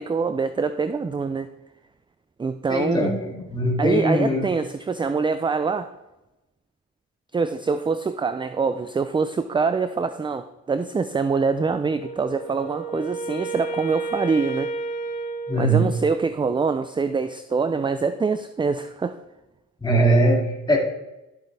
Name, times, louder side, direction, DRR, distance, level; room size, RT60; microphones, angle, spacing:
voice 1, 0.0-1.5 2.4-3.1 3.8-5.9 7.3-14.7 15.5-19.2, right 4 dB, 15° right, 11 dB, 0.4 m, -24 dB
voice 2, 2.7-4.5 15.5-15.9 19.8-20.8, right 1 dB, 15° left, -2 dB, 2.6 m, -21 dB
Wind instrument woodwind instrument, 12.0-16.3, right 3 dB, 85° left, 1.5 m, -32 dB
12.5 x 8.0 x 3.3 m, 0.97 s
cardioid pair, 90°, 30 cm